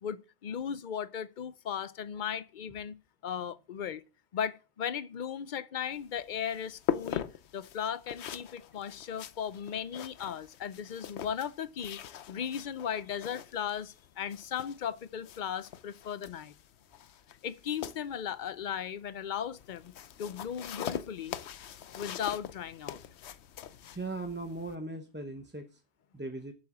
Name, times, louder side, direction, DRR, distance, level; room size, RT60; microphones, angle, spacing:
voice 1, 0.0-3.0 3.2-4.0 4.3-7.3 7.5-16.5 17.4-19.9 20.2-21.4 21.9-23.0, left 8 dB, 55° left, 0.7 m, -37 dB
sound 1, 5.9-24.7, left 10 dB, 90° left, 1.0 m, -42 dB
voice 2, 23.9-25.8 26.1-26.5, right 2 dB, 10° right, 0.8 m, -38 dB
7.7 x 7.3 x 7.2 m
omnidirectional pair, 1.1 m